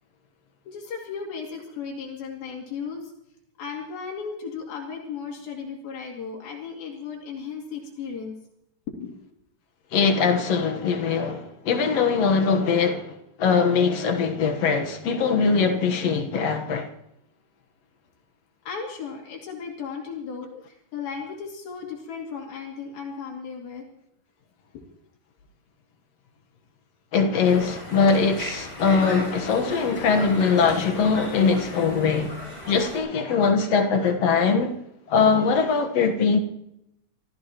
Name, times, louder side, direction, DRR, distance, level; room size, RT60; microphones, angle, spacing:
voice 1, 0.7-3.1 3.6-8.4 8.9-9.1 18.7-23.9 24.7-24.9, left 6 dB, 80° left, 4.3 m, -35 dB
voice 2, 9.9-13.1 13.4-16.9 27.1-32.3 32.7-34.7 35.1-36.4, left 5 dB, 60° left, 1.9 m, -21 dB
Conversation, 27.4-33.0, left 1 dB, 20° left, 8.0 m, -36 dB
26.5 x 16.0 x 3.0 m
omnidirectional pair, 4.2 m